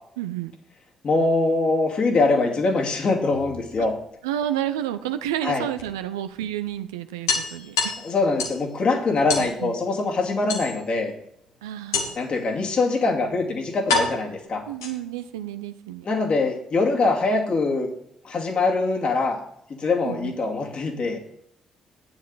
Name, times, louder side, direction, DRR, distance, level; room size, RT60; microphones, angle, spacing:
voice 1, 0.2-0.5 4.2-7.9 9.4-9.7 11.6-12.2 14.7-16.1 20.0-20.3, right 11 dB, 80° right, 11 dB, 0.5 m, -30 dB
voice 2, 1.0-3.9 5.4-5.7 8.0-11.1 12.2-14.6 16.0-17.9 18.2-19.4 19.7-21.2, left 3 dB, 50° left, 1 dB, 2.4 m, -23 dB
sound 1, 3.3-4.3 5.8-5.9 6.3-6.4 6.7-6.8 7.3-8.7 9.3-9.5 10.5-11.0 11.9-12.4 13.2-13.3 13.9-15.2, left 4 dB, 85° left, 1.4 m, -27 dB
10.5 x 9.4 x 4.0 m, 0.73 s
figure-of-eight pair, 40°, 2 cm